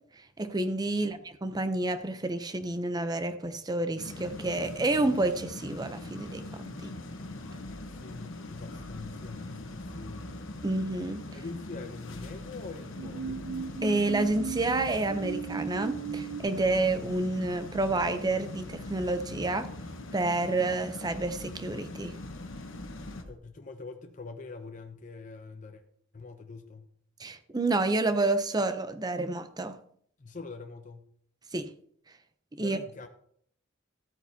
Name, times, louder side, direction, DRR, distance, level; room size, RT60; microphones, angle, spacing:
voice 1, 0.4-6.9 10.6-11.2 13.8-19.7 20.1-22.2 27.2-29.8 31.5-31.7 32.5-32.8, right 2 dB, 20° right, 0.6 m, -29 dB
sound 1, 4.0-23.2, left 2 dB, 70° left, 1.1 m, -42 dB
sound 2, 7.2-23.3, equal, 10° left, 3.8 m, -52 dB
voice 2, 7.8-10.3 11.3-13.5 23.3-25.8 26.1-26.9 30.2-31.1 32.6-33.1, left 3 dB, 40° left, 0.6 m, -44 dB
sound 3, 13.0-16.4, right 6 dB, 80° right, 0.9 m, -36 dB
13.5 x 8.7 x 2.8 m
head